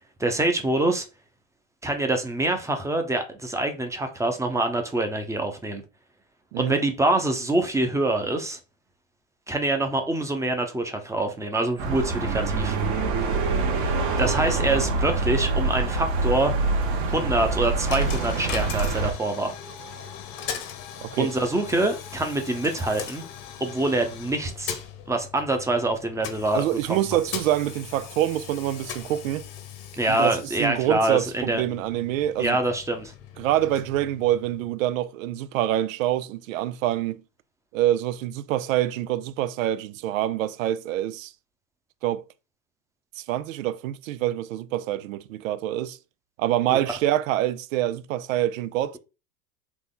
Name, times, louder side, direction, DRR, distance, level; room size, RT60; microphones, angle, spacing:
voice 1, 0.2-1.1 1.8-5.8 6.6-8.6 9.5-12.8 13.8-16.5 17.1-19.6 21.2-23.2 23.6-24.8 25.1-27.0 30.0-31.6 32.4-33.1 46.7-46.8, right 2 dB, 10° right, 0.7 m, -25 dB
voice 2, 6.5-6.8 21.0-21.3 26.5-29.5 30.1-32.6 33.4-37.2 37.7-41.3 42.0-42.2 43.2-46.0 46.4-49.0, right 13 dB, 80° right, 0.5 m, -26 dB
sound 1, 11.8-19.1, right 3 dB, 60° right, 1.6 m, -25 dB
Coin (dropping), 17.9-34.8, left 8 dB, 50° left, 1.0 m, -39 dB
4.0 x 2.8 x 3.8 m
supercardioid pair, 120°, 39 cm